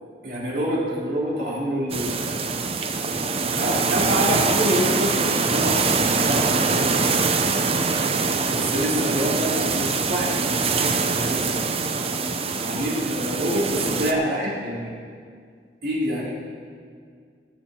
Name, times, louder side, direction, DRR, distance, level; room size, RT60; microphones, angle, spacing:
voice 1, 0.2-2.4 3.6-6.9 8.5-11.7 12.6-15.0 15.8-16.3, equal, 65° right, -6 dB, 3.4 m, -26 dB
sound 1, 1.9-14.1, right 4 dB, 35° right, 0.6 m, -23 dB
18.0 x 7.3 x 4.4 m, 2.1 s
head